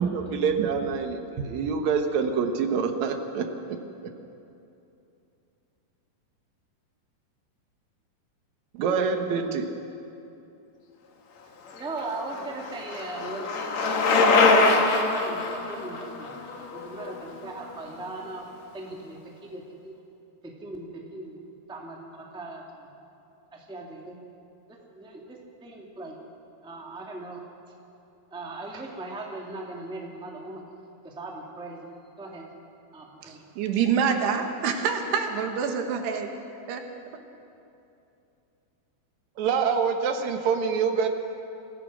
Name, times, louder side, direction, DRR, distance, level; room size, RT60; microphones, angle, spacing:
voice 1, 0.0-3.4 8.7-9.7 39.4-41.1, right 6 dB, 60° right, 5 dB, 2.1 m, -26 dB
voice 2, 11.7-16.3 16.7-19.9 20.4-21.4 21.7-22.9 23.5-24.2 24.9-26.2 26.6-27.4 28.3-30.6 31.0-31.9 32.2-32.5 32.9-33.5, right 2 dB, ahead, -2 dB, 1.3 m, -39 dB
Bicycle, 11.8-17.8, left 3 dB, 55° left, 2.4 m, -24 dB
voice 3, 33.2-36.3 36.7-36.8, right 6 dB, 85° right, 5 dB, 3.6 m, -26 dB
27.5 x 15.5 x 6.3 m, 2.8 s
omnidirectional pair, 4.6 m